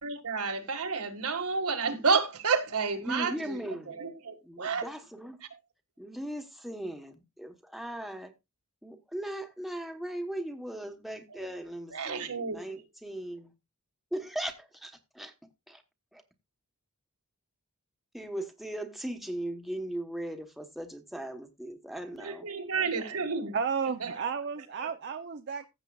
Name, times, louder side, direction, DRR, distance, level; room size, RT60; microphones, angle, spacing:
voice 1, 0.0-4.8 11.3-11.5 11.9-12.7 22.2-23.5 24.0-24.2, right 5 dB, 75° right, 1.9 m, -30 dB
voice 2, 3.0-3.9 4.4-5.4 6.0-8.3 8.8-13.5 14.1-15.3 15.7-15.8 16.1-16.2 18.1-22.5 22.8-23.2, right 1 dB, ahead, 1.2 m, -38 dB
voice 3, 23.5-25.7, right 6 dB, 50° right, 0.7 m, -32 dB
15.5 x 7.5 x 2.4 m
head